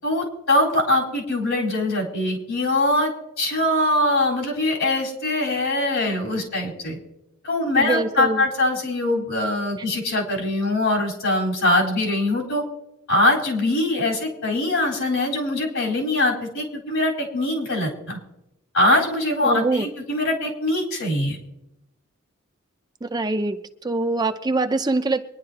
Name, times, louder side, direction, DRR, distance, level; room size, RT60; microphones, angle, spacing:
voice 1, 0.0-3.1 3.4-7.0 7.4-12.6 13.1-18.2 18.7-21.4, left 1 dB, 80° left, -3 dB, 4.1 m, -22 dB
voice 2, 7.8-8.4 19.4-19.9 23.0-23.6 23.8-25.2, right 2 dB, 20° right, 8 dB, 0.4 m, -23 dB
24.5 x 10.5 x 2.9 m, 0.88 s
head